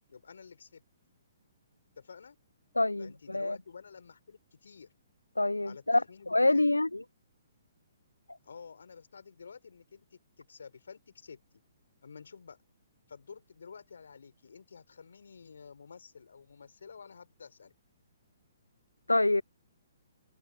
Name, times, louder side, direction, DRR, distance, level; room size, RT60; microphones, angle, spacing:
voice 1, 0.1-0.8 2.0-2.4 3.0-4.9 5.6-6.7 8.4-10.1 10.4-11.4 12.0-12.6 13.1-17.7, left 5 dB, 70° left, 4.1 m, -50 dB
voice 2, 2.8-3.6 5.4-7.0 19.1-19.4, left 2 dB, 90° left, 0.6 m, -26 dB
open air
figure-of-eight pair, 125°, 0 cm